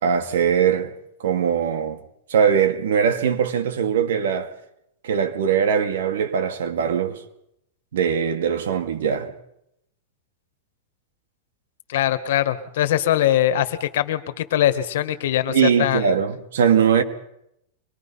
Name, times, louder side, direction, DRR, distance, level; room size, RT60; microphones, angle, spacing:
voice 1, 0.0-0.9 1.2-2.0 2.3-4.5 5.0-7.2 7.9-9.3 15.5-17.0, right 7 dB, 80° right, 2.5 m, -21 dB
voice 2, 11.9-16.0, left 12 dB, 65° left, 1.7 m, -22 dB
24.0 x 21.5 x 5.7 m
supercardioid pair, 170°, 0 cm